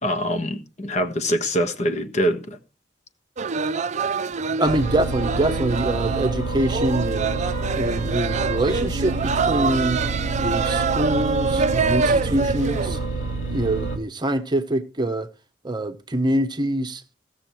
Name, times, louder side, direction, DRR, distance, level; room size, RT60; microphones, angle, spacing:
voice 1, 0.0-2.6, equal, 40° left, 1.4 m, -24 dB
sound 1, 3.4-13.1, right 4 dB, 40° right, 0.5 m, -25 dB
sound 2, 4.6-14.0, right 3 dB, 80° left, 3.3 m, -28 dB
voice 2, 4.6-7.4 7.7-10.0 10.4-13.0 13.5-15.3 15.6-17.0, right 1 dB, 25° right, 0.9 m, -24 dB
16.0 x 7.0 x 4.5 m
head